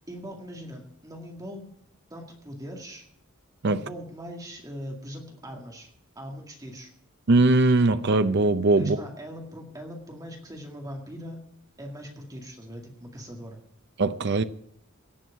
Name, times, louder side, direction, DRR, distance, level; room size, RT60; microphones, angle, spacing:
voice 1, 0.1-1.7 2.1-3.1 3.6-5.9 6.2-6.9 8.8-11.4 11.8-13.6, equal, 15° right, 2.1 m, -40 dB
voice 2, 7.3-9.0 14.0-14.4, right 2 dB, 55° right, 0.6 m, -20 dB
18.0 x 6.3 x 8.5 m
head